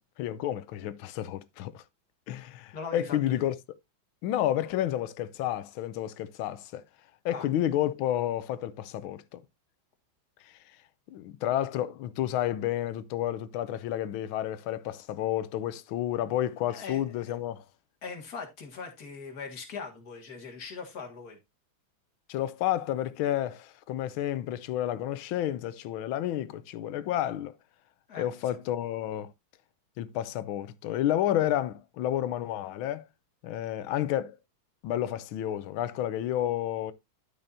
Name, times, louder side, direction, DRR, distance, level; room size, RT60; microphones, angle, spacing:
voice 1, 0.2-1.8 2.3-3.5 4.2-6.8 7.2-9.4 10.4-10.6 11.1-17.6 22.3-27.6 28.2-29.3 30.0-33.1 33.4-34.4 34.8-36.9, left 12 dB, 85° left, 1.4 m, -30 dB
voice 2, 2.7-3.4 7.3-7.5 16.7-17.0 18.0-21.4 28.1-28.3, left 5 dB, 50° left, 2.2 m, -40 dB
12.0 x 5.6 x 2.6 m
omnidirectional pair, 2.2 m